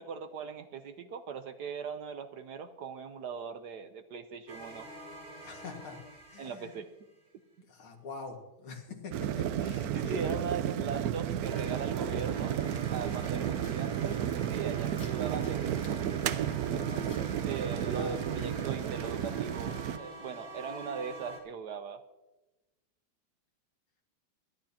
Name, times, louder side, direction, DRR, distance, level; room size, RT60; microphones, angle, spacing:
voice 1, 0.0-4.9 6.4-6.9 9.9-12.6 12.8-16.0 17.4-22.0, right 5 dB, 65° right, 9 dB, 1.1 m, -40 dB
sound 1, 4.5-7.2 11.5-21.4, right 1 dB, 45° right, 2.6 m, -47 dB
voice 2, 5.4-6.0 6.3-6.7 7.7-10.3 13.0-13.2 16.6-18.2, left 4 dB, 85° left, 2 dB, 2.7 m, -45 dB
sound 2, 9.1-20.0, right 10 dB, 90° right, 0.8 m, -32 dB
sound 3, 12.5-17.6, left 3 dB, 55° left, 2.7 m, -55 dB
23.0 x 11.5 x 2.8 m, 1.0 s
omnidirectional pair, 2.3 m